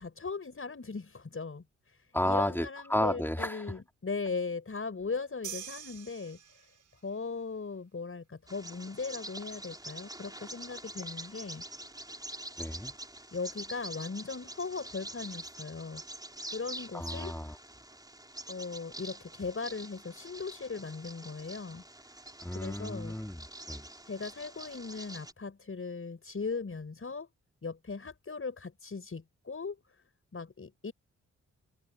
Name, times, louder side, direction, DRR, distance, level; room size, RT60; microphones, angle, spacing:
voice 1, 0.0-2.0 2.2-6.4 7.0-11.6 13.3-16.0 16.5-17.4 18.5-21.8 22.5-23.2 24.0-27.3 27.6-29.8 30.3-30.9, left 4 dB, 40° left, 5.8 m, -38 dB
voice 2, 2.1-3.8 12.6-12.9 16.9-17.5 22.4-23.8, left 1 dB, 5° left, 3.1 m, -32 dB
sound 1, 5.4-7.0, right 9 dB, 65° right, 5.7 m, -44 dB
Bird vocalization bird call bird song, 8.5-25.3, right 1 dB, 10° right, 4.4 m, -45 dB
supercardioid pair, 45°, 32 cm